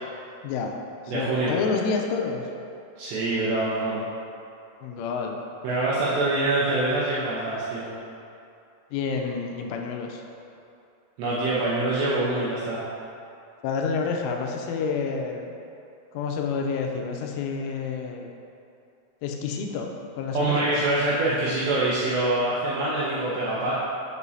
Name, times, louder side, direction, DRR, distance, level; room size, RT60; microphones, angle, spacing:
voice 1, 0.4-0.7 1.1-2.5 4.8-5.4 8.9-10.2 13.6-15.6 16.1-18.3 19.2-19.9 20.2-20.7, left 5 dB, 85° left, 2 dB, 2.9 m, -29 dB
voice 2, 1.1-1.5 3.0-4.0 5.6-7.9 11.2-12.8 20.3-23.7, right 2 dB, 80° right, -8 dB, 2.6 m, -25 dB
8.1 x 5.2 x 2.7 m, 2.6 s
omnidirectional pair, 5.7 m